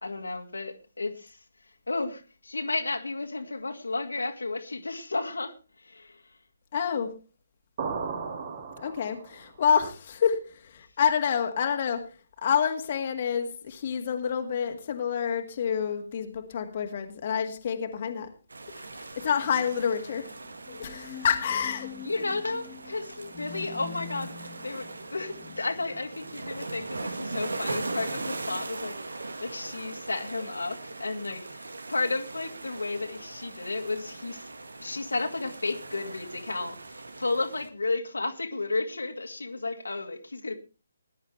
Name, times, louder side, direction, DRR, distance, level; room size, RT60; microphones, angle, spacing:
voice 1, 0.0-1.4 1.9-6.2 22.0-34.4 34.8-40.5, left 3 dB, 70° left, 2.3 m, -33 dB
voice 2, 6.7-7.1 8.8-12.0 12.4-18.3 19.2-20.3 20.7-21.9, left 7 dB, 40° left, 2.0 m, -28 dB
sound 1, 7.8-9.5, right 5 dB, 40° right, 3.1 m, -35 dB
sound 2, 18.5-37.7, right 3 dB, 70° right, 1.7 m, -40 dB
sound 3, 20.3-28.6, left 8 dB, 15° left, 1.0 m, -47 dB
20.5 x 11.0 x 3.3 m
figure-of-eight pair, 140°, 0 cm